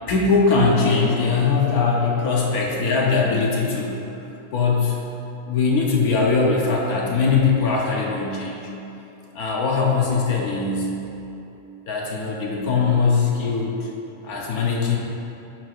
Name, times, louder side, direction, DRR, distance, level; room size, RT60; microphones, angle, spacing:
voice 1, 0.1-4.0 4.5-5.0 5.4-8.7 9.3-10.9 11.9-13.9 14.2-15.0, left 4 dB, 75° left, -3 dB, 1.3 m, -21 dB
10.5 x 5.9 x 2.5 m, 2.9 s
omnidirectional pair, 1.6 m